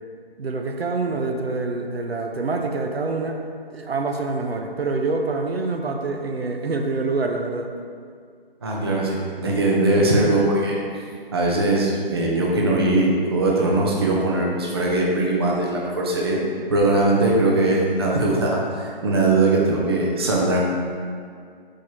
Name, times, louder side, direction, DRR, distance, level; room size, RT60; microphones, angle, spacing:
voice 1, 0.4-3.4 3.7-7.7, right 3 dB, 80° right, 3 dB, 0.8 m, -26 dB
voice 2, 8.6-10.8 11.3-16.4 16.7-20.6, right 2 dB, 25° right, -3 dB, 0.5 m, -20 dB
4.7 x 4.4 x 4.6 m, 2.1 s
figure-of-eight pair, 160°, 30 cm